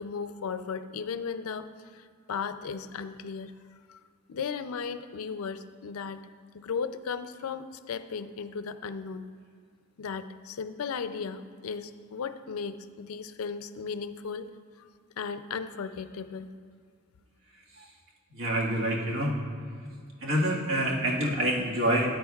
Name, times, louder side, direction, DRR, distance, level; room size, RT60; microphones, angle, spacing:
voice 1, 0.0-3.5 3.9-4.0 4.3-6.2 6.5-9.3 10.0-14.5 14.8-14.9 15.2-16.5, left 5 dB, 75° left, 11 dB, 0.4 m, -36 dB
voice 2, 18.3-19.3 20.2-22.2, right 1 dB, 65° right, -3 dB, 1.7 m, -27 dB
13.0 x 9.1 x 2.3 m, 2.2 s
head